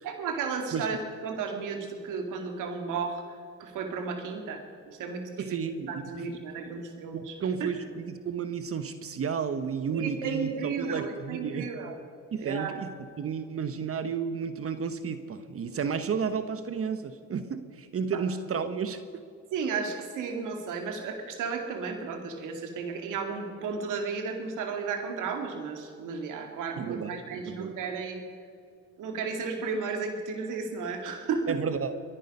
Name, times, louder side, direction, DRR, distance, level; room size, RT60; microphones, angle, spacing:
voice 1, 0.0-3.2 3.6-4.6 4.9-5.6 5.9-7.3 7.6-7.7 9.9-12.0 12.4-12.8 18.1-18.2 19.5-28.2 29.0-31.6, right 5 dB, 80° right, 4 dB, 2.3 m, -33 dB
voice 2, 5.4-6.8 7.1-11.7 12.3-12.9 13.2-19.2 26.8-27.8 31.5-31.9, right 6 dB, 50° right, 11 dB, 1.0 m, -32 dB
23.0 x 10.0 x 5.4 m, 2.3 s
supercardioid pair, 70°, 30 cm